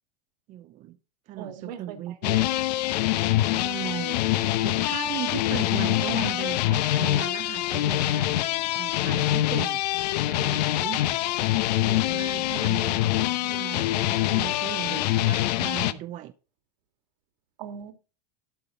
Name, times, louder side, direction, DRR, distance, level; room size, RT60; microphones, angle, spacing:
voice 1, 0.5-1.0 1.3-2.2 3.4-4.2 4.6-9.8 10.3-11.1 11.9-16.3, right 13 dB, 35° right, 0.7 m, -37 dB
voice 2, 1.4-2.5 17.6-17.9, right 8 dB, 75° right, 2.6 m, -39 dB
sound 1, 2.2-15.9, left 14 dB, 70° left, 1.0 m, -25 dB
12.5 x 7.4 x 3.9 m
supercardioid pair, 130°, 21 cm